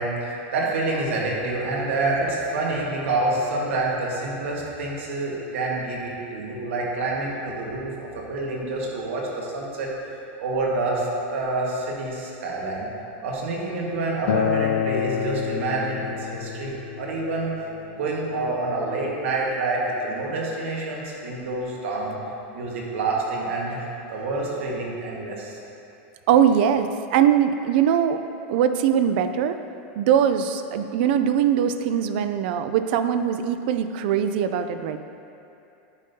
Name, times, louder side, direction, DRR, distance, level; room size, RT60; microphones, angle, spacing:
voice 1, 0.0-9.9 10.4-12.9 13.2-17.5 17.9-22.2 22.5-25.6, right 2 dB, 80° right, -3 dB, 1.5 m, -27 dB
Acoustic guitar, 14.3-19.5, left 9 dB, 65° left, 0.3 m, -29 dB
voice 2, 26.3-28.2 28.5-29.6 29.9-35.0, right 9 dB, 55° right, 9 dB, 0.4 m, -21 dB
9.9 x 5.2 x 2.8 m, 2.7 s
supercardioid pair, 165°, 7 cm